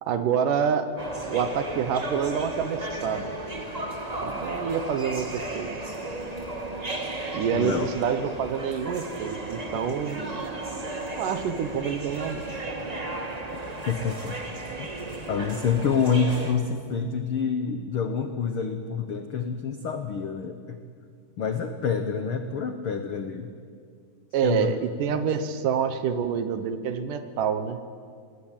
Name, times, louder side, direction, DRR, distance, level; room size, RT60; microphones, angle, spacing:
voice 1, 0.0-0.9 1.3-3.4 4.2-5.7 7.3-10.5 11.2-12.7 24.3-27.8, right 7 dB, 70° right, 10 dB, 2.6 m, -27 dB
sound 1, 1.0-16.5, right 2 dB, 20° right, 0.9 m, -34 dB
voice 2, 7.5-7.9 13.9-14.3 14.8-14.9 15.3-20.8 21.4-23.5 24.4-24.7 25.1-25.2, left 6 dB, 80° left, 7 dB, 1.2 m, -27 dB
27.0 x 19.5 x 9.1 m, 2.2 s
omnidirectional pair, 4.1 m